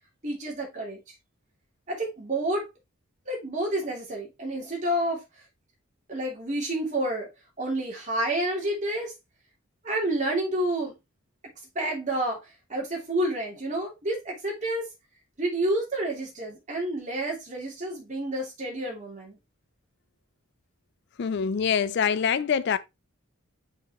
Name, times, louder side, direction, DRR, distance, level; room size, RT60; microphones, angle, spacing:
voice 1, 0.2-1.0 1.9-2.7 3.3-5.2 6.1-7.3 7.6-9.1 9.8-10.9 11.7-12.4 12.7-14.9 15.4-19.4, right 1 dB, 35° right, 2.8 m, -29 dB
voice 2, 21.2-22.8, left 7 dB, 55° left, 0.4 m, -25 dB
5.8 x 5.4 x 3.0 m
head